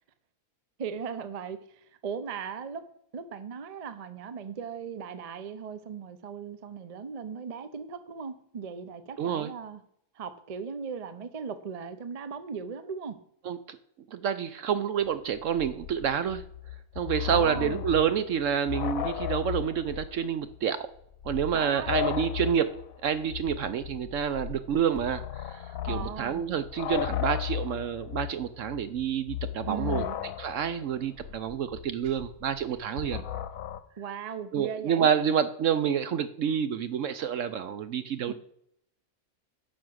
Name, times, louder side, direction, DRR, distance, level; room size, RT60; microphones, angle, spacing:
voice 1, 0.8-2.9 3.1-9.8 10.1-13.2 17.3-17.8 21.5-22.1 25.9-26.4 29.7-30.2 32.0-32.2 34.0-35.1 38.3-38.4, right 6 dB, 40° right, 12 dB, 0.5 m, -38 dB
voice 2, 9.2-9.5 13.5-13.8 14.1-16.4 17.0-20.8 21.2-22.7 23.0-30.0 30.4-33.2 34.5-38.3, right 8 dB, 65° right, 12 dB, 0.9 m, -28 dB
sound 1, 15.1-15.2 15.3-20.2 20.5-20.6 21.1-33.8, left 11 dB, 65° left, 1.1 m, -35 dB
10.5 x 6.4 x 6.2 m, 0.72 s
omnidirectional pair, 1.6 m